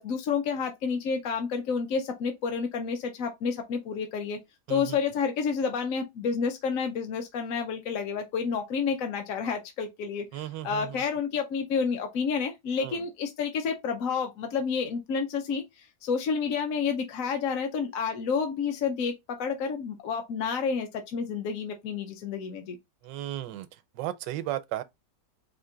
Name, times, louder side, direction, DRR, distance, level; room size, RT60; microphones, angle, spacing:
voice 1, 0.0-4.4 4.7-22.8, left 6 dB, 60° left, 0.9 m, -30 dB
voice 2, 10.3-11.0 12.8-13.0 23.0-23.7 23.9-24.8, right 13 dB, 85° right, 1.2 m, -35 dB
4.4 x 2.6 x 3.7 m
omnidirectional pair, 1.9 m